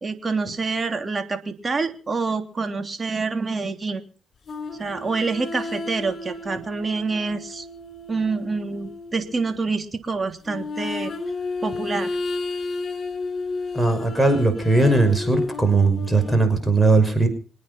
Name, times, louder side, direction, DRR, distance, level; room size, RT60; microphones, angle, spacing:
voice 1, 0.0-4.0 4.8-7.6 8.1-11.1 11.6-12.2, right 4 dB, 35° right, 7 dB, 3.2 m, -27 dB
sound 1, 4.5-9.5 10.4-16.3, left 3 dB, 50° left, 5.7 m, -32 dB
voice 2, 13.7-17.3, right 3 dB, 5° right, 8 dB, 6.1 m, -19 dB
26.5 x 9.5 x 5.8 m, 0.39 s
hypercardioid pair, 50°, 0 cm